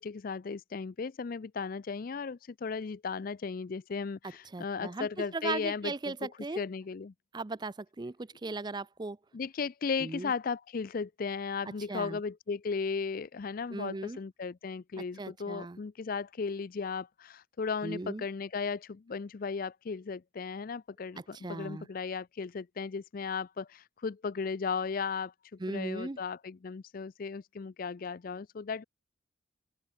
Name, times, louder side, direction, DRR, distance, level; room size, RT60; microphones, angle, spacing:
voice 1, 0.0-7.1 9.3-28.8, left 5 dB, 45° left, 0.4 m, -36 dB
voice 2, 4.5-6.6 7.3-9.2 10.0-10.3 11.9-12.2 13.7-14.2 15.2-15.8 17.8-18.2 21.4-21.9 25.6-26.2, right 3 dB, 20° right, 0.4 m, -37 dB
open air
head